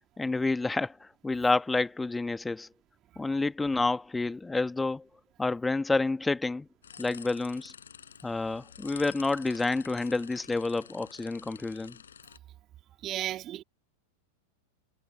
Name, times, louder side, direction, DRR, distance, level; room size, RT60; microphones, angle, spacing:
voice 1, 0.2-2.7 3.2-5.0 5.4-6.7 7.0-7.7 8.2-12.0, left 3 dB, 10° left, 1.5 m, -29 dB
sound 1, 6.8-12.4, left 8 dB, 70° left, 5.0 m, -49 dB
voice 2, 13.0-13.6, right 13 dB, 30° right, 2.1 m, -34 dB
figure-of-eight pair, 90°, 0 cm